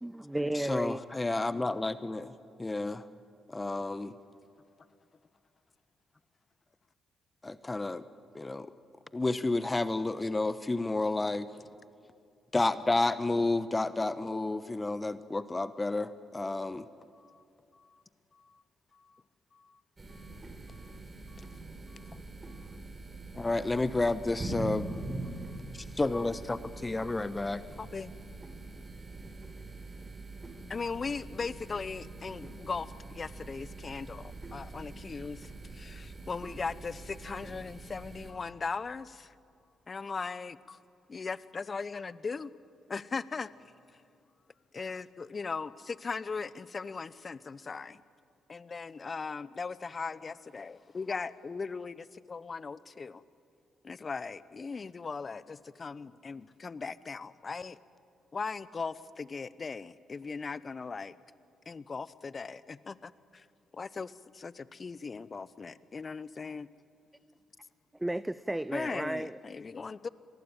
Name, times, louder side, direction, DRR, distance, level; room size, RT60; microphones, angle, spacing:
voice 1, 0.0-1.0 68.0-69.4, right 1 dB, 10° right, 16 dB, 0.6 m, -33 dB
voice 2, 0.5-2.3 2.6-3.1 3.5-4.1 7.4-8.0 8.3-8.7 9.1-11.5 12.5-16.8 23.4-24.9 25.7-27.6, left 2 dB, 25° left, 14 dB, 1.0 m, -31 dB
sound 1, 20.0-38.3, right 2 dB, 35° right, 4.9 m, -44 dB
voice 3, 20.7-21.0 21.3-22.2 22.5-22.6 25.5-25.6 27.8-28.1 30.7-39.3 39.9-40.8 41.1-42.5 42.9-43.5 43.9-44.0 44.7-48.0 48.5-53.2 53.8-57.8 58.3-61.1 61.7-63.5 63.7-66.7 68.7-70.1, left 4 dB, 40° left, 18 dB, 0.8 m, -39 dB
24.0 x 20.0 x 9.1 m, 2.4 s
hypercardioid pair, 45°, 0 cm